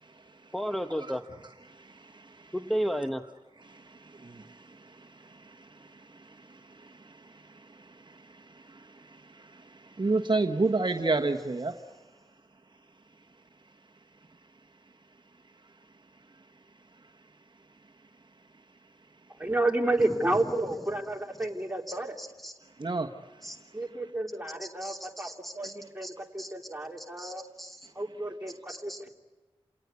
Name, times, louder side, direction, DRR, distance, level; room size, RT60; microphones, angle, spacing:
voice 1, 0.5-1.2 2.5-3.2 20.0-20.1 21.9-22.5 23.4-23.6 24.6-25.7 26.0-26.1 26.4-26.5 27.2-27.9 28.7-29.0, equal, ahead, 6 dB, 1.1 m, -34 dB
voice 2, 10.0-11.7 22.8-23.1, right 3 dB, 45° right, 4 dB, 1.3 m, -26 dB
voice 3, 19.4-22.1 23.7-27.4 27.9-29.1, right 2 dB, 15° right, 2 dB, 3.4 m, -31 dB
29.0 x 18.0 x 9.7 m, 1.3 s
cardioid pair, 40°, 11 cm